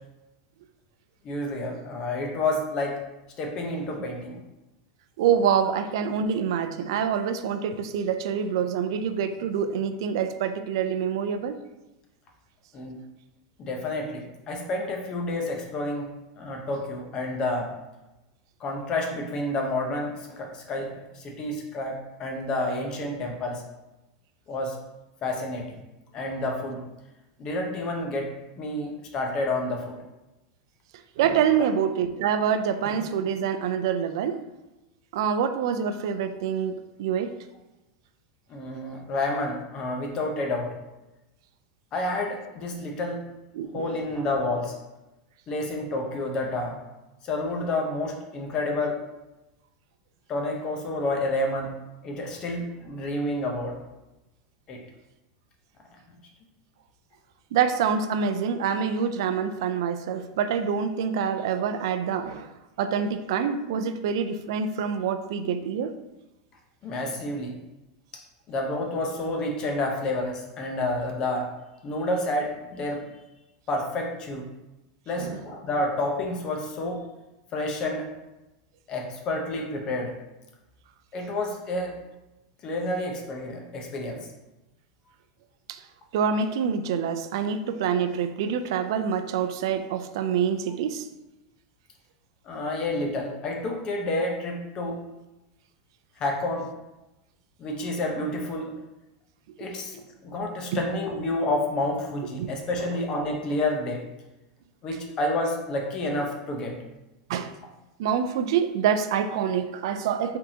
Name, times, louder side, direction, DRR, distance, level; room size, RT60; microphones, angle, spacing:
voice 1, 1.2-3.0 3.4-4.4 12.7-13.0 13.6-16.1 16.4-17.7 18.6-23.6 24.5-24.8 25.2-25.8 26.1-26.8 27.4-30.0 38.5-40.7 41.9-43.2 43.7-44.8 45.5-46.8 47.2-49.0 50.3-51.7 52.0-53.8 54.7-54.8 66.8-67.6 68.5-71.5 71.8-73.0 73.7-74.5 75.1-77.0 77.5-78.1 78.9-80.1 81.1-82.0 82.6-84.3 92.5-95.0 96.2-96.7 97.6-98.7 99.6-104.0 104.8-106.8, left 2 dB, 30° left, 1 dB, 0.8 m, -29 dB
voice 2, 5.2-11.6 31.2-34.4 35.1-37.3 43.5-43.9 57.5-65.9 75.2-75.4 85.7-85.8 86.1-91.1 100.7-100.8 102.4-102.5 102.8-103.0 107.3-107.5 108.0-110.4, right 7 dB, 65° right, 9 dB, 0.4 m, -26 dB
5.0 x 3.6 x 2.8 m, 1.0 s
supercardioid pair, 160°, 3 cm